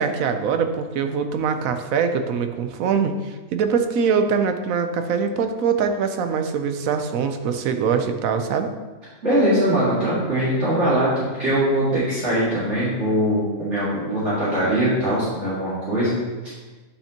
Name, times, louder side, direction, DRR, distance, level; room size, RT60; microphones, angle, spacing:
voice 1, 0.0-8.7 11.9-12.0, right 6 dB, 90° right, 7 dB, 1.1 m, -23 dB
voice 2, 9.2-16.2 16.4-16.5, right 1 dB, 60° right, -11 dB, 2.5 m, -21 dB
9.9 x 5.6 x 2.9 m, 1.2 s
omnidirectional pair, 1.4 m